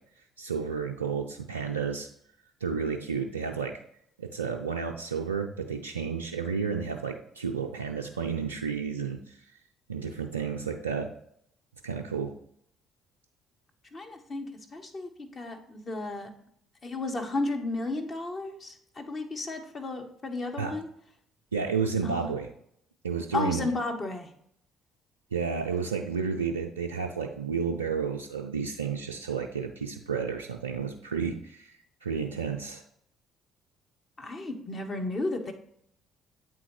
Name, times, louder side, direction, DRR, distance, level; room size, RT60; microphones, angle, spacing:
voice 1, 0.4-2.1 2.6-3.7 4.2-9.4 9.9-11.1 11.8-12.3 20.6-20.7 21.5-22.5 23.0-23.7 25.3-31.7 32.0-32.8, right 6 dB, 90° right, 2 dB, 0.3 m, -31 dB
voice 2, 13.9-16.3 16.8-20.9 22.0-22.3 23.3-24.3 34.2-35.5, left 2 dB, 40° left, 4 dB, 1.0 m, -33 dB
8.3 x 3.6 x 3.1 m, 0.69 s
hypercardioid pair, 50°, 0 cm